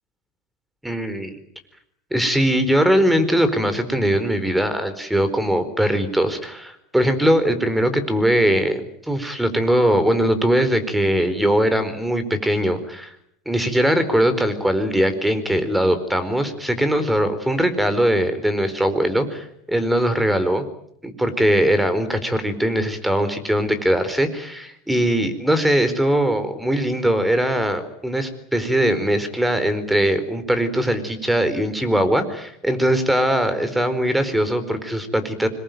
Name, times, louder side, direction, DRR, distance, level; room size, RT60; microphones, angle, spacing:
voice 1, 0.8-1.3 2.1-13.1 13.5-20.7 21.0-35.5, equal, 5° right, 11 dB, 4.4 m, -20 dB
26.0 x 21.5 x 9.3 m, 0.73 s
supercardioid pair, 110°, 0 cm